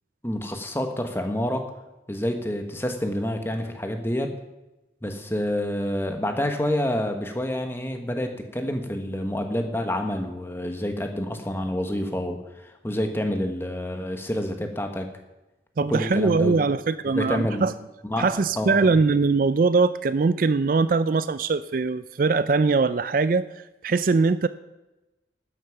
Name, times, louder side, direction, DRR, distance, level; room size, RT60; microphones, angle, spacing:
voice 1, 0.2-1.6 2.1-4.4 5.0-15.1 15.9-16.6 17.1-17.6 18.0-18.9, left 1 dB, 15° left, 5 dB, 1.3 m, -28 dB
voice 2, 15.8-17.7 18.2-23.5 23.8-24.5, right 4 dB, 50° right, 15 dB, 0.4 m, -21 dB
12.5 x 9.9 x 5.9 m, 1.0 s
head